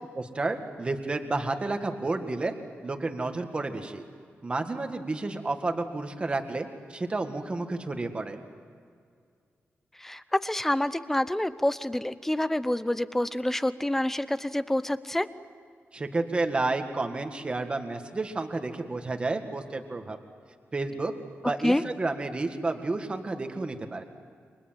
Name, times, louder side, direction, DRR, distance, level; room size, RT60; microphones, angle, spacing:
voice 1, 0.1-2.5 2.8-4.0 4.4-8.4 15.9-20.2 20.7-21.1 21.4-24.0, right 3 dB, 25° right, 6 dB, 1.9 m, -31 dB
voice 2, 10.0-15.3 21.6-21.8, left 1 dB, 5° left, 13 dB, 0.8 m, -27 dB
29.5 x 25.0 x 7.7 m, 2.2 s
wide cardioid pair, 165°, 4 cm